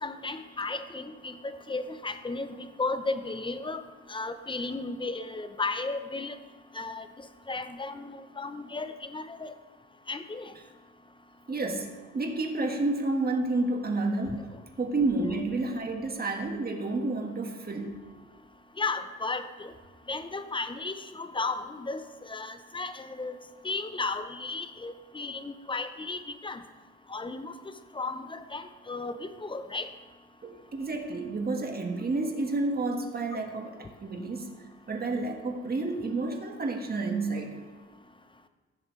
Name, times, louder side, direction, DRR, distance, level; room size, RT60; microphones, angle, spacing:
voice 1, 0.0-3.8 4.1-6.3 6.7-7.1 7.5-9.5 10.1-10.5 14.3-14.4 18.8-19.7 20.1-23.4 23.6-26.6 27.1-27.5 27.9-29.9, left 3 dB, 15° left, 10 dB, 0.7 m, -34 dB
voice 2, 11.5-14.5 14.8-18.0 30.4-34.5 34.9-37.6, right 2 dB, 30° right, 3 dB, 1.6 m, -30 dB
15.5 x 7.1 x 3.2 m, 1.4 s
cardioid pair, 90°, 30 cm